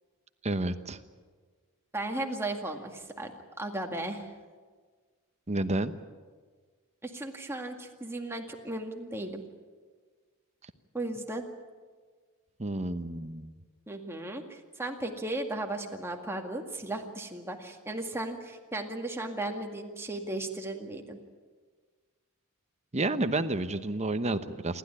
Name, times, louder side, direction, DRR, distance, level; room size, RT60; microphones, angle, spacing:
voice 1, 0.4-1.0 5.5-5.9 12.6-13.5 22.9-24.8, right 2 dB, 30° right, 10 dB, 1.0 m, -30 dB
voice 2, 1.9-3.3 3.6-4.3 7.0-9.4 10.9-11.4 13.9-21.2, right 2 dB, 10° right, 2 dB, 2.0 m, -36 dB
28.0 x 12.5 x 9.8 m, 1.5 s
head